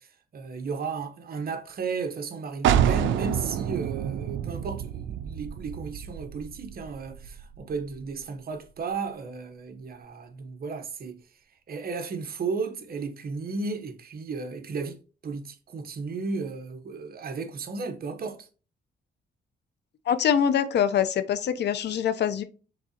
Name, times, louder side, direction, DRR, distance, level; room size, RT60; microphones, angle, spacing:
voice 1, 0.0-11.2 11.7-18.5, right 4 dB, 50° right, 0.9 m, -34 dB
sound 1, 2.6-8.2, right 10 dB, 75° right, 0.4 m, -28 dB
voice 2, 20.1-22.4, left 8 dB, 60° left, 0.6 m, -24 dB
5.2 x 3.6 x 2.8 m
cardioid pair, 90°, 20 cm